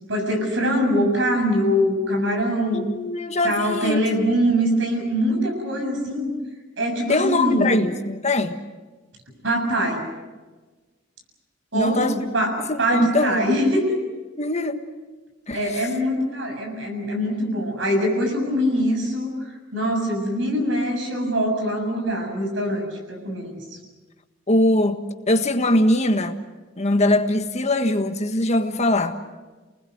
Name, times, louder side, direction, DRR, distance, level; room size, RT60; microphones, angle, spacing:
voice 1, 0.1-2.9 3.4-6.4 6.8-7.7 9.4-10.0 11.7-14.0 15.5-19.3 19.7-23.6, equal, 70° right, 7.3 m, -23 dB
voice 2, 2.7-4.3 7.1-8.6 11.7-12.2 12.7-13.6 14.4-14.8 15.5-15.8 24.5-26.4 26.8-29.2, left 1 dB, 35° left, 1.6 m, -22 dB
28.5 x 20.0 x 8.0 m
head